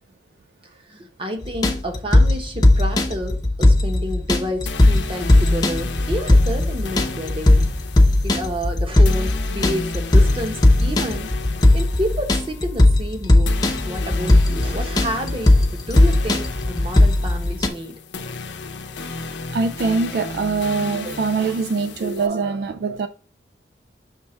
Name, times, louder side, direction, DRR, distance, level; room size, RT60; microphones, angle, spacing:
voice 1, 0.6-7.7 8.2-11.4 11.7-17.9, equal, 30° right, 1.0 m, -30 dB
sound 1, 1.4-17.7, left 1 dB, 20° left, 0.7 m, -17 dB
sound 2, 4.7-22.3, left 3 dB, 85° left, 0.7 m, -34 dB
voice 2, 19.1-23.1, right 4 dB, 60° right, 0.3 m, -23 dB
6.4 x 3.4 x 4.3 m
head